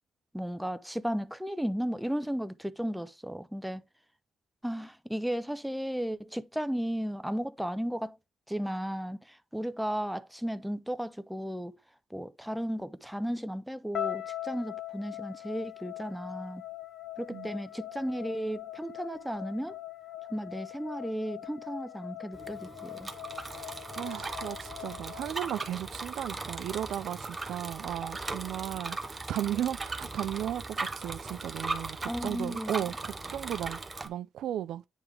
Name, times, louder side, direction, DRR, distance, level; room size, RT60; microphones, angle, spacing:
voice 1, 0.3-3.8 4.6-8.2 8.5-11.8 12.1-16.6 17.2-19.8 20.3-23.1 32.1-32.8, equal, 5° right, 0.5 m, -34 dB
sound 1, 13.9-26.1, left 13 dB, 60° left, 1.2 m, -42 dB
Bicycle, 22.3-34.1, right 3 dB, 25° right, 0.8 m, -38 dB
voice 2, 23.9-34.8, right 11 dB, 75° right, 0.3 m, -35 dB
9.0 x 3.5 x 3.4 m
cardioid pair, 90°, 0 cm